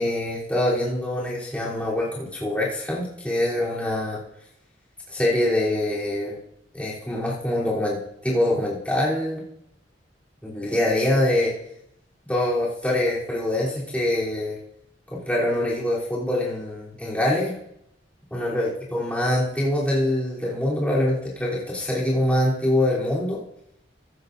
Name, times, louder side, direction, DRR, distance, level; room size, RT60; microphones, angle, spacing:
voice 1, 0.0-4.2 5.1-6.3 6.7-9.4 10.4-11.5 12.3-14.6 15.1-17.5 18.3-23.4, left 1 dB, 10° left, -8 dB, 3.5 m, -24 dB
15.0 x 14.5 x 2.7 m, 0.76 s
head